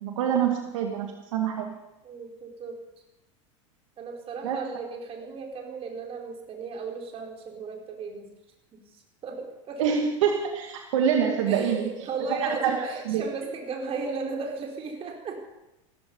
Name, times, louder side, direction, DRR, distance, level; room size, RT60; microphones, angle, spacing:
voice 1, 0.0-1.7 4.4-4.6 9.8-11.9 12.3-13.3, right 7 dB, 75° right, 2 dB, 2.3 m, -26 dB
voice 2, 2.0-2.8 4.0-8.3 8.7-8.8 9.2-9.8 11.5-15.4, right 4 dB, 35° right, 1 dB, 4.5 m, -35 dB
16.0 x 14.5 x 5.5 m, 0.94 s
supercardioid pair, 110°, 16 cm